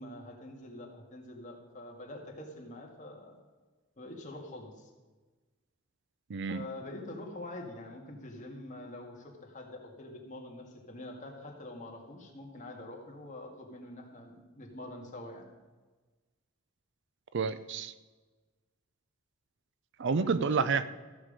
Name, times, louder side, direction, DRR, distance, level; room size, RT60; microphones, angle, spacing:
voice 1, 0.0-3.4 4.0-4.9 6.5-15.5 20.1-20.7, left 1 dB, 35° left, 0 dB, 2.0 m, -45 dB
voice 2, 6.3-6.6 17.3-17.9 20.0-20.9, right 5 dB, 60° right, 14 dB, 0.5 m, -29 dB
14.5 x 7.1 x 5.1 m, 1.3 s
head